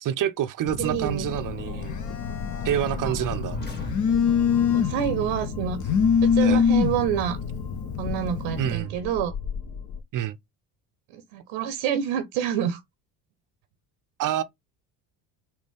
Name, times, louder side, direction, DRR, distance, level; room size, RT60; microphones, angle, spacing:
voice 1, 0.0-2.1 2.6-3.6 6.4-6.6 8.6-9.0 10.1-10.4 14.2-14.4, right 11 dB, 40° right, 0.6 m, -27 dB
Telephone, 0.7-8.7, left 7 dB, 35° left, 0.9 m, -25 dB
voice 2, 0.8-1.3 3.0-3.1 4.7-5.8 6.2-7.4 8.0-9.3 11.1-12.8, right 9 dB, 75° right, 0.8 m, -27 dB
sound 1, 1.2-4.6, left 2 dB, 20° left, 1.7 m, -38 dB
sound 2, 4.2-10.0, left 5 dB, 55° left, 1.5 m, -36 dB
4.2 x 2.8 x 3.5 m
hypercardioid pair, 70°, 50 cm